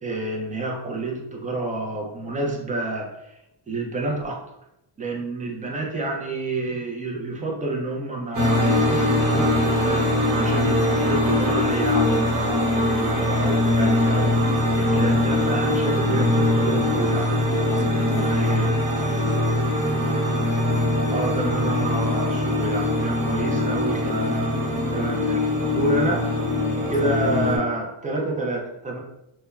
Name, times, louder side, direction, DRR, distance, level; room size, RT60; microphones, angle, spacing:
voice 1, 0.0-3.3 3.7-4.4 5.0-14.4 14.8-17.3 18.0-18.7 21.1-25.4 25.7-26.2 26.9-29.0, right 2 dB, 20° right, -1 dB, 0.3 m, -29 dB
sound 1, 8.3-27.6, left 1 dB, 40° right, 0.9 m, -22 dB
voice 2, 17.7-19.5 26.7-27.2, left 4 dB, 80° left, 4 dB, 0.6 m, -38 dB
3.0 x 2.1 x 2.3 m, 0.85 s
wide cardioid pair, 140°, 49 cm